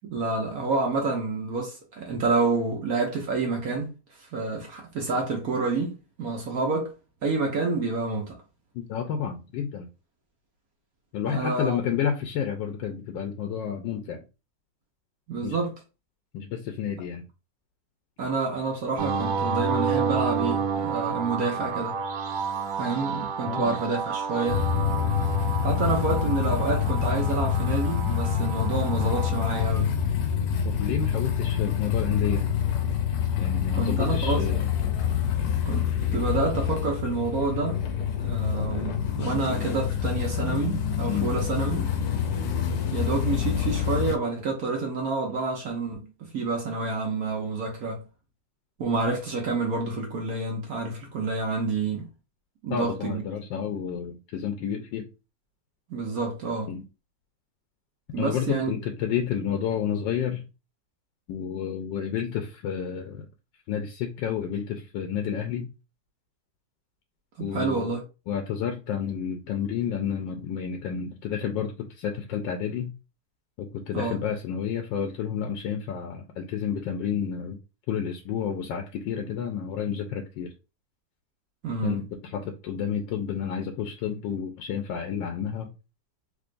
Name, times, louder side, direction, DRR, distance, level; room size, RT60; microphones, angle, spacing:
voice 1, 0.0-3.9 4.2-5.9 6.2-6.9 7.2-8.4 11.3-11.8 15.3-15.7 18.2-22.0 22.8-24.6 25.6-30.0 33.7-34.5 35.7-37.8 38.2-41.8 42.9-48.0 48.8-52.0 52.6-53.2 55.9-56.7 58.1-58.7 67.4-68.0 73.9-74.2 81.6-82.0, right 3 dB, 60° right, 1.2 m, -28 dB
voice 2, 8.7-9.9 11.1-14.2 15.4-15.6 16.3-17.3 23.5-23.8 30.6-32.5 33.4-34.6 41.1-41.3 52.7-55.1 56.7-56.8 58.2-60.4 61.3-63.3 63.7-65.7 67.4-67.9 68.3-72.9 73.6-77.6 77.9-80.5 81.8-85.7, left 8 dB, 85° left, 1.3 m, -30 dB
sound 1, 19.0-29.7, right 5 dB, 90° right, 1.3 m, -30 dB
sound 2, 24.5-44.2, left 8 dB, 65° left, 1.1 m, -26 dB
3.6 x 3.2 x 2.5 m
omnidirectional pair, 1.9 m